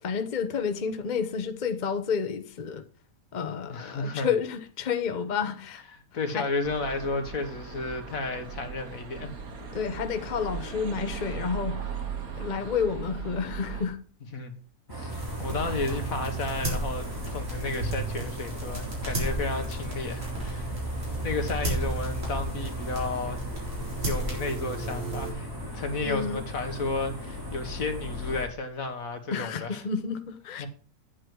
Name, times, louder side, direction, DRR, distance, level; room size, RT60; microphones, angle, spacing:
voice 1, 0.0-2.8 3.3-5.8 6.3-6.5 9.7-11.8 12.3-14.0 26.0-26.4 29.3-30.7, left 6 dB, 35° left, 0.9 m, -30 dB
voice 2, 3.6-4.3 6.1-9.3 14.3-14.5 14.9-20.7 21.2-23.4 23.8-29.8 30.5-30.7, left 3 dB, 70° left, 1.8 m, -32 dB
sound 1, 6.6-13.9, right 6 dB, 80° right, 1.8 m, -38 dB
sound 2, 14.9-28.4, equal, 15° right, 3.4 m, -36 dB
sound 3, 15.1-25.3, right 1 dB, 55° right, 4.5 m, -34 dB
9.5 x 8.5 x 4.6 m
omnidirectional pair, 1.5 m